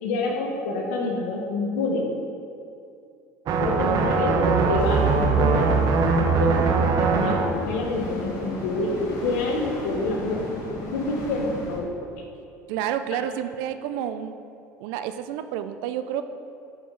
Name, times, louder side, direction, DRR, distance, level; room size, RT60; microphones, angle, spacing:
voice 1, 0.0-2.1 3.6-5.7 6.1-10.4 10.9-11.9 13.1-13.2, left 2 dB, 80° left, 0 dB, 1.2 m, -27 dB
sound 1, 3.5-7.5, right 4 dB, 55° right, 0.8 m, -21 dB
sound 2, 4.8-11.8, left 1 dB, 50° left, 1.7 m, -35 dB
voice 2, 12.7-14.3 14.8-16.2, right 10 dB, 70° right, 10 dB, 0.4 m, -29 dB
8.7 x 5.0 x 3.9 m, 2.5 s
hypercardioid pair, 80°, 8 cm